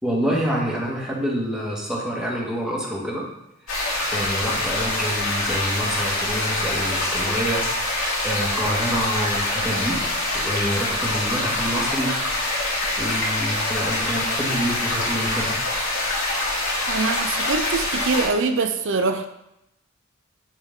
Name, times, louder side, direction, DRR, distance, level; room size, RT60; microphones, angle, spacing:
voice 1, 0.0-3.2 4.1-7.6 8.2-10.0 10.3-12.1 13.0-15.5, equal, 5° right, -4 dB, 1.9 m, -27 dB
sound 1, 3.7-18.3, left 2 dB, 70° left, 3.1 m, -25 dB
voice 2, 16.9-19.3, right 4 dB, 65° right, 7 dB, 0.6 m, -24 dB
9.2 x 6.4 x 3.7 m, 0.84 s
head